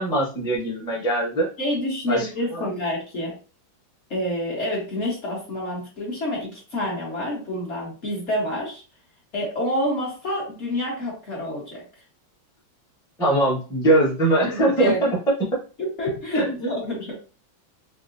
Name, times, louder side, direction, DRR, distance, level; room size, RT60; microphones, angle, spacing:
voice 1, 0.0-1.5 2.1-2.7 13.2-14.9 16.3-16.7, right 1 dB, 5° left, -6 dB, 0.4 m, -22 dB
voice 2, 1.6-3.3 4.1-8.8 9.3-11.8 14.8-15.1 15.8-17.1, left 1 dB, 45° left, -4 dB, 1.0 m, -28 dB
4.7 x 2.0 x 2.5 m, 0.36 s
omnidirectional pair, 2.2 m